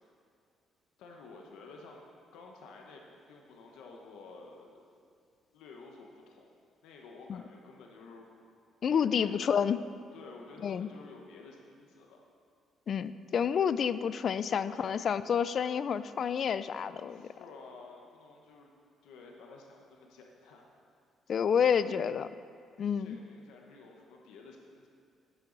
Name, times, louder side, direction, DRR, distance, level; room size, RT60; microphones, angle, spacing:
voice 1, 1.0-2.0 2.3-4.8 5.5-6.5 6.8-8.3 8.9-9.7 10.1-12.2 14.5-15.0 17.0-18.7 19.0-20.7 23.0-24.9, left 3 dB, 90° left, 0 dB, 1.0 m, -52 dB
voice 2, 8.8-9.8 10.6-10.9 12.9-17.3 21.3-22.3 22.8-23.2, left 7 dB, 50° left, 14 dB, 0.3 m, -29 dB
10.0 x 9.0 x 3.9 m, 2.3 s
cardioid pair, 115°, 0 cm